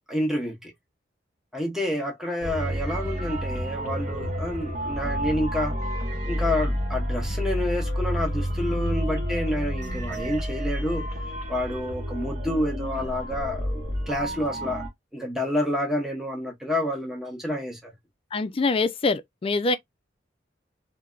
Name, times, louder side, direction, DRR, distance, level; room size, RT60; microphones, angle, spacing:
voice 1, 0.1-0.7 1.5-5.7 6.3-11.0 11.5-14.8 15.1-17.9, left 1 dB, ahead, 0.7 m, -29 dB
sound 1, 2.4-14.9, equal, 45° right, 0.9 m, -29 dB
voice 2, 18.3-19.8, left 3 dB, 30° left, 0.4 m, -24 dB
3.2 x 2.1 x 2.3 m
head